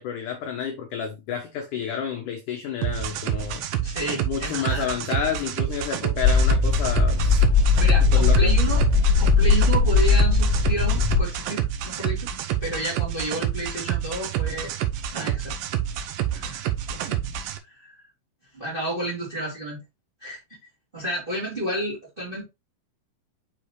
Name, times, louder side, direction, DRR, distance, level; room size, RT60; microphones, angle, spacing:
voice 1, 0.0-3.6 4.3-7.4 8.1-8.5, left 7 dB, 75° left, 1.9 m, -30 dB
sound 1, 2.8-17.6, right 11 dB, 85° right, 2.0 m, -28 dB
voice 2, 3.8-4.9 7.7-8.8 9.2-12.3 12.6-14.7 15.1-15.5 16.3-17.3 17.7-18.0 18.5-19.8 20.2-20.4 20.9-22.5, right 1 dB, 15° right, 2.0 m, -31 dB
sound 2, 6.2-11.2, left 4 dB, 15° left, 2.9 m, -19 dB
6.4 x 5.1 x 3.1 m
omnidirectional pair, 4.8 m